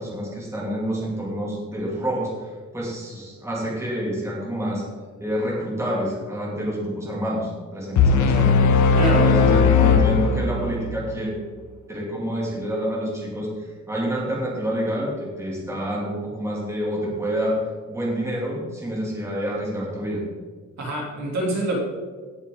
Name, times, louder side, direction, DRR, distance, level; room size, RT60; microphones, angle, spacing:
voice 1, 0.0-4.8 5.2-8.5 9.1-11.3 11.9-17.6 17.9-20.2, equal, 10° right, -4 dB, 2.6 m, -28 dB
sound 1, 8.0-10.9, left 5 dB, 80° left, 0.9 m, -17 dB
voice 2, 9.0-9.3 20.8-21.8, right 1 dB, 65° right, -2 dB, 3.1 m, -25 dB
17.5 x 7.1 x 3.8 m, 1.5 s
wide cardioid pair, 160°, 29 cm